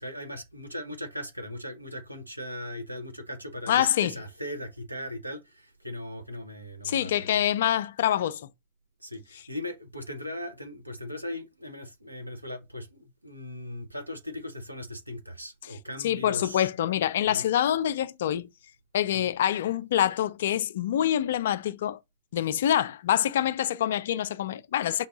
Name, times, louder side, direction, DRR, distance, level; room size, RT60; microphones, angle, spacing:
voice 1, 0.0-7.4 9.0-16.7 17.2-17.5 19.1-19.3, left 1 dB, 90° right, 0.8 m, -39 dB
voice 2, 3.7-4.2 6.9-8.5 16.0-18.5 18.9-22.0 22.3-25.1, left 11 dB, 60° left, 0.3 m, -26 dB
5.4 x 2.5 x 3.9 m
figure-of-eight pair, 90°, 0 cm